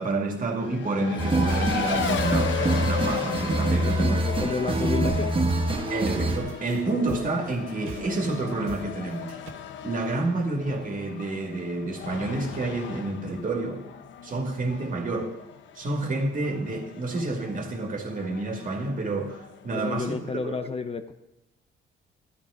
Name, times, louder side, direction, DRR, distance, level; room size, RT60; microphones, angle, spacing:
voice 1, 0.0-4.5 5.9-9.4 9.8-13.9 14.2-15.3 15.8-20.2 20.4-20.5, right 2 dB, 45° right, 2.3 m, -29 dB
Race car auto racing, 0.6-19.7, left 9 dB, 70° left, 0.9 m, -36 dB
sound 1, 1.1-9.5, right 5 dB, 85° right, 1.4 m, -43 dB
sound 2, 1.2-6.4, right 2 dB, 25° right, 1.2 m, -25 dB
voice 2, 3.7-5.3 19.7-21.1, left 4 dB, 30° left, 0.7 m, -31 dB
13.0 x 9.4 x 4.9 m
cardioid pair, 90°, 20 cm